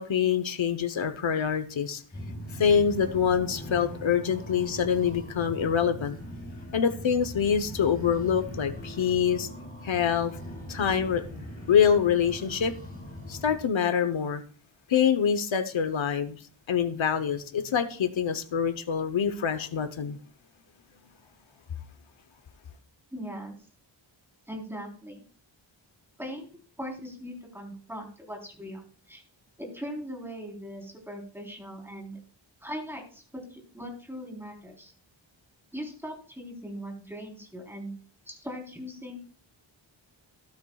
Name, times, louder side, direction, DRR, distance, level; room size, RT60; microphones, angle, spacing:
voice 1, 0.0-2.0 2.5-6.2 6.7-9.5 9.8-10.4 10.7-11.2 11.7-12.7 13.3-14.4 14.9-16.4 16.7-20.2, left 7 dB, 70° left, 1.0 m, -25 dB
sound 1, 2.1-13.6, equal, 20° left, 5.9 m, -40 dB
voice 2, 23.1-23.5 24.5-25.2 26.2-26.5 26.8-29.2 29.6-32.2 32.6-34.9 35.7-37.9 38.3-39.2, equal, 5° right, 3.8 m, -40 dB
13.5 x 12.5 x 2.3 m
wide cardioid pair, 90°, 47 cm